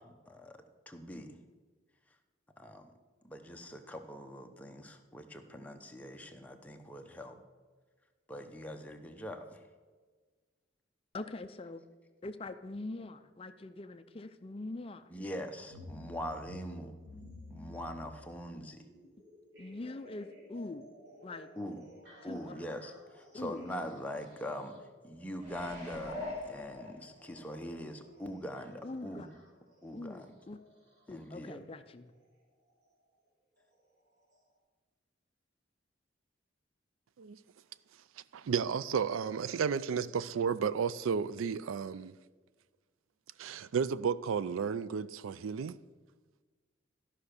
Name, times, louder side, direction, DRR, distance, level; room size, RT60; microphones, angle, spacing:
voice 1, 0.0-1.4 2.6-2.9 3.2-7.4 8.3-9.6 15.1-16.9 17.5-18.9 21.5-21.8 22.2-29.3 29.8-30.4 31.1-31.6, equal, 5° left, 0.8 m, -43 dB
voice 2, 11.1-11.8 12.2-15.1 19.6-20.9 21.2-21.5 22.2-22.6 23.3-23.6 28.8-29.3 29.9-30.6 31.1-32.1, left 2 dB, 30° left, 0.4 m, -43 dB
sound 1, 15.6-31.5 32.7-32.8 33.6-33.7 34.3-34.4, left 1 dB, 55° right, 2.9 m, -54 dB
sound 2, 25.4-27.5 27.9-28.0, left 2 dB, 35° right, 2.7 m, -43 dB
voice 3, 38.3-42.1 43.4-45.8, right 6 dB, 90° right, 0.4 m, -33 dB
13.5 x 5.7 x 6.5 m
head